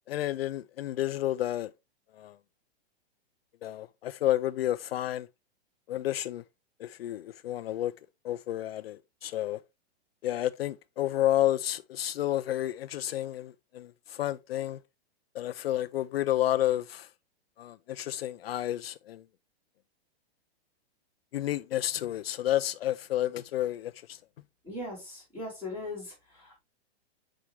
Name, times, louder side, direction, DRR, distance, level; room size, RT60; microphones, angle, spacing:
voice 1, 0.1-1.7 2.1-2.4 3.6-5.3 5.9-6.4 6.8-7.9 8.2-9.6 10.2-14.8 15.3-17.1 17.6-19.2 21.3-24.2, left 13 dB, 70° left, 0.4 m, -30 dB
voice 2, 24.6-26.6, left 2 dB, 5° right, 3.5 m, -39 dB
6.8 x 5.0 x 3.0 m
hypercardioid pair, 170°, 32 cm